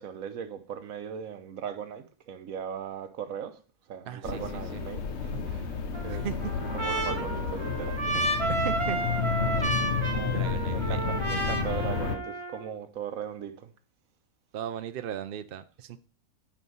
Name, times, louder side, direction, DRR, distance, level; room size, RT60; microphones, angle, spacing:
voice 1, 0.0-3.6 3.9-6.3 6.7-8.3 10.1-13.7, right 8 dB, 75° right, 1.3 m, -39 dB
voice 2, 4.1-4.8 6.1-6.4 8.6-9.0 10.2-11.0 14.5-16.0, right 9 dB, 55° right, 0.6 m, -37 dB
sound 1, 4.2-12.2, left 5 dB, 55° left, 1.1 m, -31 dB
Trumpet, 5.9-12.7, right 2 dB, 25° right, 0.9 m, -32 dB
9.5 x 4.4 x 5.5 m
omnidirectional pair, 1.5 m